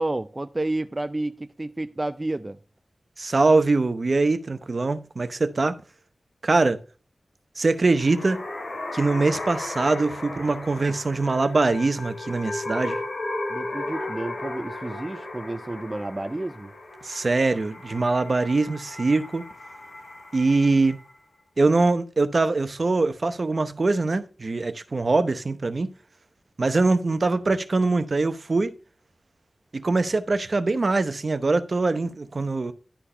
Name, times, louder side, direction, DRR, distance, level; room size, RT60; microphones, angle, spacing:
voice 1, 0.0-2.6 13.5-16.7, right 2 dB, 25° right, 0.4 m, -30 dB
voice 2, 3.2-5.8 6.4-6.8 7.6-8.4 8.9-13.0 17.0-19.4 20.3-21.0 21.6-25.9 26.6-28.7 29.7-32.7, right 3 dB, 50° right, 0.8 m, -23 dB
sound 1, 7.8-21.2, left 2 dB, 85° left, 3.8 m, -35 dB
11.5 x 4.5 x 5.6 m
wide cardioid pair, 100°, 0 cm